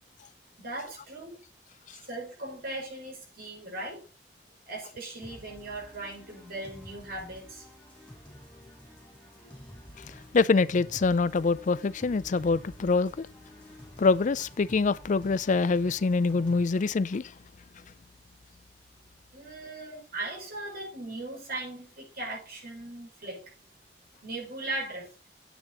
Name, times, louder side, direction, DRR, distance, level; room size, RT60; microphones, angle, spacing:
voice 1, 0.6-1.4 2.0-4.0 4.7-7.7 19.3-23.5 24.2-25.1, right 2 dB, 60° right, 5.7 m, -38 dB
sound 1, 5.2-16.6, equal, 5° left, 6.4 m, -50 dB
voice 2, 10.1-13.3 14.0-17.3 19.7-20.0, left 4 dB, 45° left, 0.4 m, -25 dB
9.1 x 8.9 x 4.0 m
head